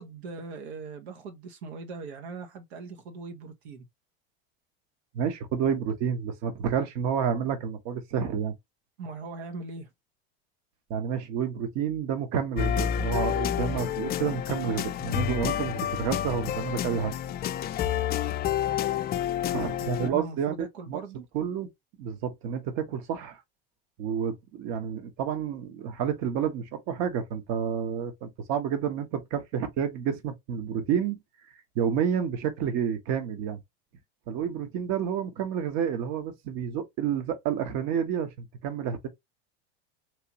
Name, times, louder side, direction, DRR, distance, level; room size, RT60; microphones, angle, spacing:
voice 1, 0.0-3.8 9.0-9.9 19.8-21.3, right 4 dB, 80° right, 1.0 m, -40 dB
voice 2, 5.1-8.5 10.9-17.1 19.5-21.0 21.3-21.7 22.0-23.4 24.0-31.2 31.7-33.6 34.3-39.1, right 8 dB, 55° right, 1.1 m, -29 dB
sound 1, 12.6-20.1, left 10 dB, 30° left, 0.4 m, -29 dB
3.3 x 3.0 x 2.8 m
supercardioid pair, 105°, 32 cm